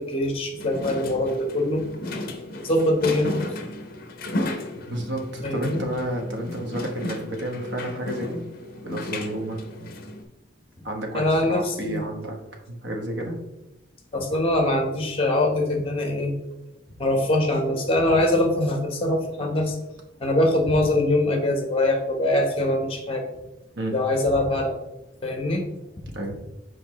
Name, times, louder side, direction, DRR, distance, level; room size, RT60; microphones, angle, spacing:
voice 1, 0.0-1.8 2.5-3.3 5.4-5.8 11.1-12.0 14.1-16.3 17.0-19.8 20.2-23.2 23.9-24.8 25.2-25.6, left 1 dB, 30° left, 3 dB, 1.1 m, -23 dB
sound 1, 0.6-10.2, left 2 dB, 45° left, 0.7 m, -34 dB
voice 2, 4.9-8.4 8.8-9.9 10.8-12.4 12.7-13.4 23.8-24.0 26.1-26.4, right 1 dB, 65° right, 2 dB, 1.1 m, -31 dB
6.5 x 4.8 x 3.1 m, 0.94 s
head